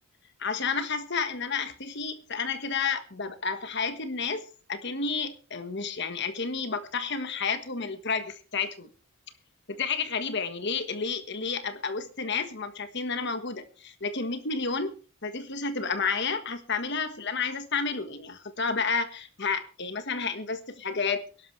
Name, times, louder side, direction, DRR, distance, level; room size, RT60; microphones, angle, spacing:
voice 1, 0.4-8.9 9.7-21.2, left 5 dB, 55° left, 1.5 m, -31 dB
21.5 x 12.0 x 3.3 m
head